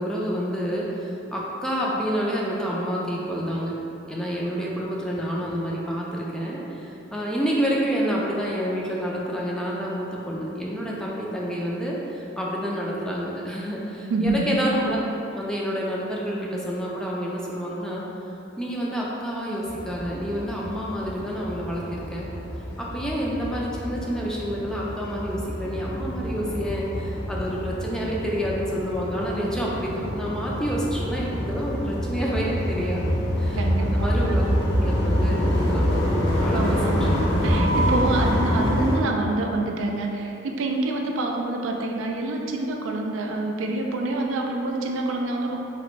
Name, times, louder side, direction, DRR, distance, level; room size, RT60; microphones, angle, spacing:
voice 1, 0.0-3.8 4.1-15.0 15.3-18.0 18.6-22.3 22.8-33.1 33.4-34.4 34.8-37.3, equal, 5° left, -5 dB, 0.3 m, -28 dB
voice 2, 14.1-14.6 33.6-34.4 36.5-45.6, right 2 dB, 80° right, 1 dB, 0.3 m, -27 dB
sound 1, 19.6-39.0, equal, 75° left, 0.7 m, -26 dB
Mallet percussion, 37.5-39.6, right 2 dB, 30° right, 0.7 m, -31 dB
3.0 x 2.5 x 3.0 m, 2.9 s
head